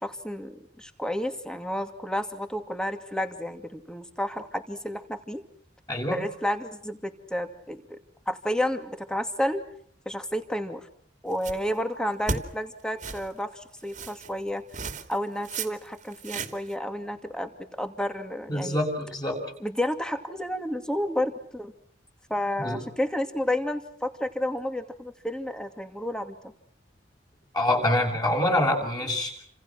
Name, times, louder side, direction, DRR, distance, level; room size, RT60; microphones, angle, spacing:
voice 1, 0.0-5.4 6.1-8.0 8.3-9.6 10.1-10.8 11.2-14.6 15.1-17.5 17.8-18.8 19.6-21.7 22.3-26.4, left 1 dB, 5° left, 7 dB, 2.5 m, -31 dB
voice 2, 5.9-6.2 18.5-19.4 22.6-22.8 27.5-29.3, left 1 dB, 20° left, 2 dB, 6.9 m, -25 dB
sound 1, 11.3-11.8 12.3-12.4 13.0-13.3 13.9-14.3 14.7-15.2 15.4-15.7 16.0-16.7, right 4 dB, 40° right, 2.6 m, -33 dB
29.5 x 27.0 x 6.1 m, 0.64 s
head